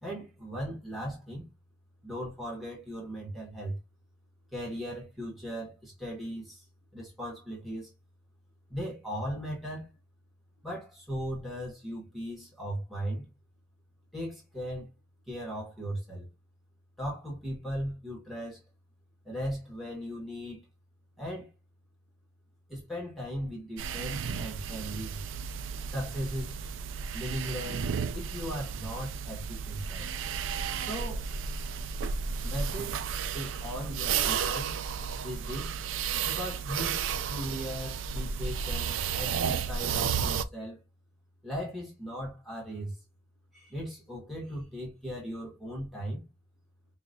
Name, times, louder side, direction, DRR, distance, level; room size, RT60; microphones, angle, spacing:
voice 1, 0.0-1.5 2.0-3.8 4.5-6.6 6.9-7.9 8.7-9.9 10.6-13.3 14.1-14.9 15.3-16.3 17.0-18.6 19.2-20.6 21.2-21.5 22.7-25.2 25.8-26.5 27.1-30.1 30.7-31.3 32.4-34.7 35.2-35.8 36.2-37.0 37.3-40.8 41.4-43.0 43.5-46.2, equal, ahead, 1.4 m, -38 dB
sound 1, 23.8-40.4, right 6 dB, 80° right, 0.4 m, -33 dB
4.9 x 2.4 x 2.5 m
head